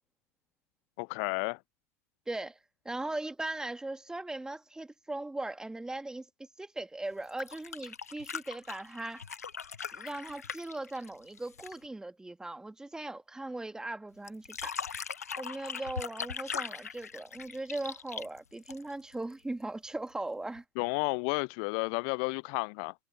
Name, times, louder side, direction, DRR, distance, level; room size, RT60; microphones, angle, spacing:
voice 1, 1.0-1.6 20.8-22.9, left 40 dB or more, 55° left, 0.4 m, -32 dB
voice 2, 2.3-2.6 2.9-6.3 6.6-9.2 9.8-14.8 15.4-20.6, right 2 dB, 10° right, 1.9 m, -39 dB
sound 1, 7.2-11.9 14.3-19.1 20.6-20.7, left 6 dB, 80° left, 1.4 m, -40 dB
figure-of-eight pair, 75°, 8 cm